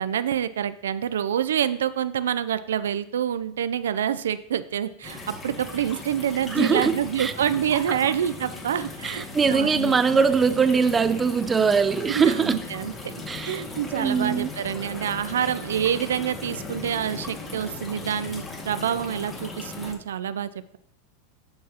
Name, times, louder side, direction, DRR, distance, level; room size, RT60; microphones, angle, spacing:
voice 1, 0.0-10.2 12.1-20.8, right 9 dB, 85° right, 0.4 m, -27 dB
sound 1, 5.0-19.9, left 3 dB, 20° left, 1.9 m, -38 dB
voice 2, 6.5-7.3 7.9-8.0 9.0-12.6 13.3-13.6 13.9-14.5, right 5 dB, 20° right, 0.6 m, -22 dB
13.5 x 4.7 x 2.9 m
hypercardioid pair, 115°, 0 cm